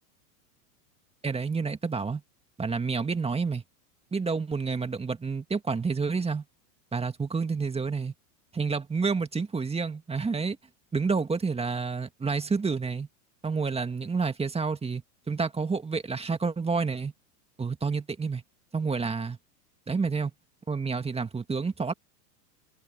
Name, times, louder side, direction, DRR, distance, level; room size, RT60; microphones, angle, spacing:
voice 1, 1.2-2.2 2.6-3.6 4.1-6.4 6.9-8.1 8.5-10.6 10.9-13.1 13.4-15.0 15.3-17.1 17.6-18.4 18.7-19.4 19.9-20.3 20.7-21.9, right 4 dB, 10° right, 1.9 m, -29 dB
hypercardioid pair, 110°, 48 cm